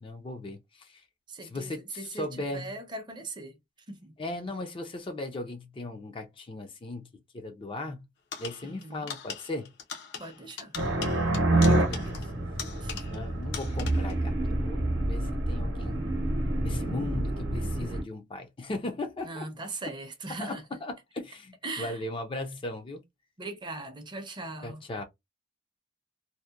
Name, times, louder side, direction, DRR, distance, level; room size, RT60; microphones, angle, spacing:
voice 1, 0.0-1.0 1.4-2.7 4.2-7.1 7.3-8.1 8.4-9.7 11.5-12.3 13.1-16.1 16.6-19.5 20.4-23.0 24.6-25.0, left 2 dB, 30° left, 0.4 m, -37 dB
voice 2, 1.3-3.6 3.9-4.1 8.6-9.1 10.2-10.7 12.8-13.2 19.2-20.6 21.6-22.0 23.4-24.8, right 2 dB, 25° right, 0.5 m, -40 dB
sound 1, 8.3-13.3 13.5-14.2, left 7 dB, 65° left, 0.6 m, -41 dB
sound 2, 10.8-18.0, right 1 dB, 70° right, 0.7 m, -27 dB
2.7 x 2.1 x 2.3 m
head